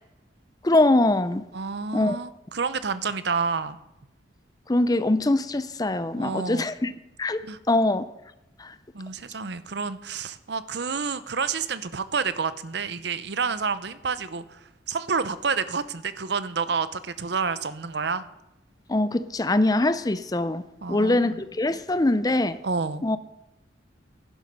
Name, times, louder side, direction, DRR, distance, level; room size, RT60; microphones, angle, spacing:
voice 1, 0.6-1.4 1.9-2.2 4.7-6.9 7.2-8.1 8.6-8.7 18.9-20.6 20.9-22.6 23.0-23.2, left 2 dB, 20° left, 0.5 m, -23 dB
voice 2, 1.5-3.8 6.1-6.6 7.4-7.6 8.9-14.6 14.9-18.2 20.8-21.2 22.6-23.0, right 5 dB, 65° right, 0.7 m, -29 dB
11.0 x 11.0 x 5.4 m
head